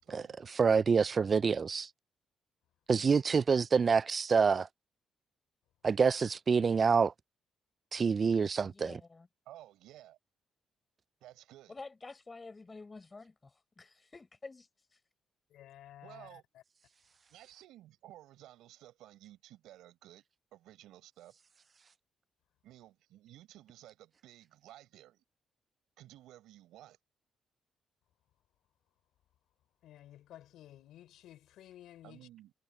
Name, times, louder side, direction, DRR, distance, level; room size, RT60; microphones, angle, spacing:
voice 1, 0.0-0.4 9.5-10.2 11.2-11.7 16.0-16.4 17.3-20.2 20.5-21.4 22.6-25.2 26.0-27.0 32.0-32.5, right 14 dB, 90° right, 5.3 m, -55 dB
voice 2, 0.6-1.9 2.9-4.7 5.8-7.1 7.9-8.9, right 5 dB, 40° right, 0.3 m, -27 dB
voice 3, 8.6-9.3 11.7-15.0, left 3 dB, 25° left, 6.5 m, -50 dB
voice 4, 15.5-16.6 29.8-32.3, left 12 dB, 80° left, 5.9 m, -54 dB
cardioid pair, 90°, 0 cm